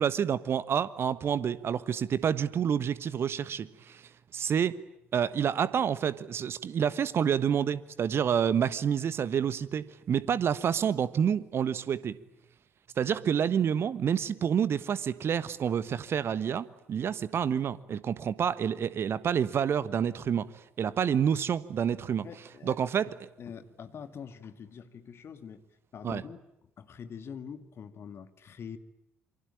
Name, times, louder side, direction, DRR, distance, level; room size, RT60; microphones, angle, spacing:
voice 1, 0.0-4.0 4.3-4.8 5.1-12.2 13.0-20.5 20.8-22.3 22.6-23.1 26.0-26.2, right 8 dB, 40° right, 17 dB, 1.3 m, -28 dB
voice 2, 22.2-22.8 23.4-25.6 25.9-26.4 26.8-28.8, left 7 dB, 45° left, 11 dB, 2.1 m, -44 dB
27.5 x 24.5 x 9.0 m, 0.83 s
figure-of-eight pair, 50°, 6 cm